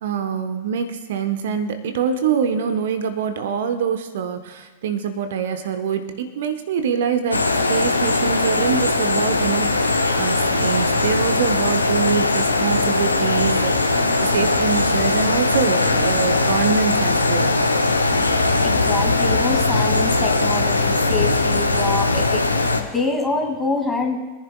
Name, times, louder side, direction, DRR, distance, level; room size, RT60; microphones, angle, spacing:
voice 1, 0.0-17.6, right 7 dB, 60° right, 8 dB, 0.9 m, -24 dB
sound 1, 7.3-22.8, left 2 dB, 80° left, 1.0 m, -20 dB
voice 2, 18.6-22.5 22.8-24.2, left 3 dB, 10° left, 2 dB, 2.1 m, -25 dB
24.5 x 10.5 x 2.2 m, 1.3 s
figure-of-eight pair, 90°, 0 cm